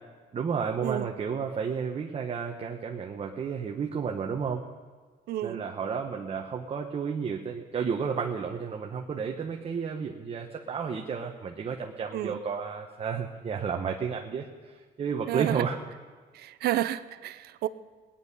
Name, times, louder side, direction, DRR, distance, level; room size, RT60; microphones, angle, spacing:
voice 1, 0.3-4.6 5.4-15.8, right 6 dB, 35° right, 1.0 m, -32 dB
voice 2, 5.3-5.6 12.1-12.4 15.3-15.6 16.3-17.7, right 13 dB, 70° right, 0.6 m, -30 dB
20.0 x 10.0 x 5.4 m
cardioid pair, 110°, 17 cm